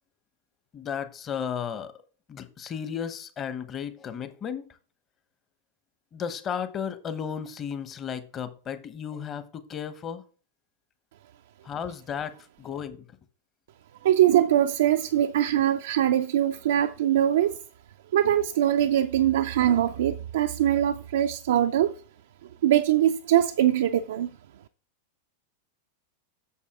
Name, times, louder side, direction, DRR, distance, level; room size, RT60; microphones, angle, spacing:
voice 1, 0.7-1.9 2.3-4.7 6.1-10.2 11.6-13.1, left 7 dB, 25° left, 1.0 m, -34 dB
voice 2, 14.0-17.6 18.1-21.9 22.6-24.3, right 11 dB, 60° right, 0.4 m, -22 dB
8.5 x 6.7 x 3.6 m
figure-of-eight pair, 90°, 0 cm